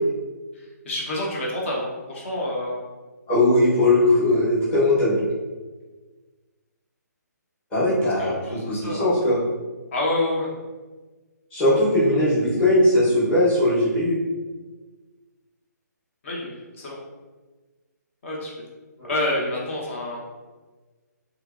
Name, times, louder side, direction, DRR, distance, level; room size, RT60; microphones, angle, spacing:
voice 1, 0.6-2.9 8.2-9.2 9.9-10.5 16.2-17.0 18.2-18.5 19.1-20.2, left 1 dB, 45° left, -3 dB, 0.8 m, -28 dB
voice 2, 3.3-5.2 7.7-9.4 11.5-14.2 19.0-19.1, left 1 dB, 10° left, -14 dB, 0.9 m, -19 dB
2.8 x 2.6 x 2.4 m, 1.3 s
hypercardioid pair, 160°, 10 cm